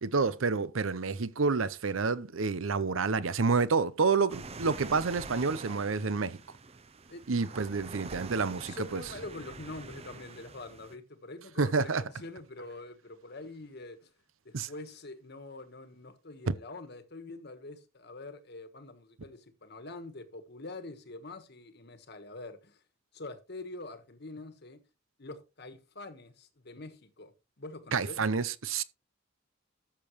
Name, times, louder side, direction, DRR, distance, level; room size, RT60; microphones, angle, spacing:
voice 1, 0.0-6.4 7.3-9.0 11.6-12.0 14.5-14.7 16.5-16.6 27.9-28.8, right 4 dB, 85° right, 0.7 m, -29 dB
sound 1, 4.3-11.0, right 3 dB, 30° right, 0.6 m, -45 dB
voice 2, 8.6-14.1 14.4-22.8 23.1-24.8 25.2-27.3 27.6-28.2, left 2 dB, 55° left, 1.4 m, -45 dB
13.0 x 6.8 x 3.2 m
head